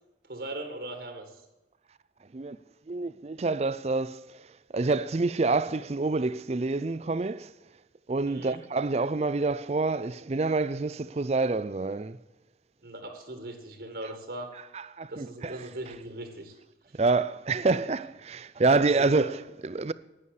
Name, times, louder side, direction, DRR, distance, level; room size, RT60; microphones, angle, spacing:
voice 1, 0.2-1.4 8.3-8.6 12.8-14.5 15.1-16.6 18.9-19.2, right 1 dB, 65° right, 1.7 m, -39 dB
voice 2, 2.9-4.5 4.7-7.5 8.1-12.2 14.0-14.2 14.7-16.0 16.9-19.9, right 3 dB, 35° right, 0.4 m, -27 dB
11.0 x 9.7 x 6.5 m
head